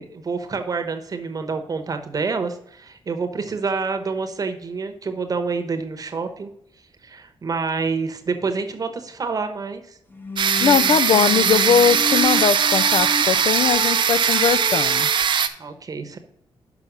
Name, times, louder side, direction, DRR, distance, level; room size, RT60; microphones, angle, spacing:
voice 1, 0.0-6.5 7.0-10.0 15.6-16.2, right 4 dB, 40° right, 7 dB, 0.9 m, -27 dB
sound 1, 10.1-15.2, left 2 dB, 20° left, 0.8 m, -31 dB
sound 2, 10.4-15.5, right 7 dB, 55° right, 0.6 m, -20 dB
voice 2, 10.6-15.1, left 8 dB, 65° left, 15 dB, 0.3 m, -20 dB
6.0 x 5.6 x 6.6 m, 0.75 s
wide cardioid pair, 140°, 10 cm